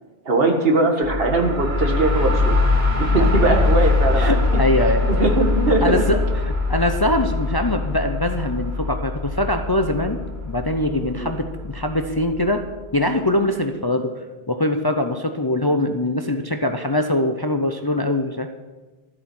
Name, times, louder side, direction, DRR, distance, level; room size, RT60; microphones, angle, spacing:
voice 1, 0.2-2.6 3.0-4.4 5.1-6.0 11.2-11.4, right 2 dB, 65° right, 3 dB, 1.8 m, -20 dB
sound 1, 1.0-12.7, left 3 dB, 45° right, 3.4 m, -22 dB
voice 2, 4.2-5.2 5.7-6.2 6.7-12.6 12.9-14.1 14.5-18.5, left 1 dB, 25° left, 6 dB, 0.6 m, -22 dB
13.5 x 8.3 x 6.1 m, 1.2 s
omnidirectional pair, 1.1 m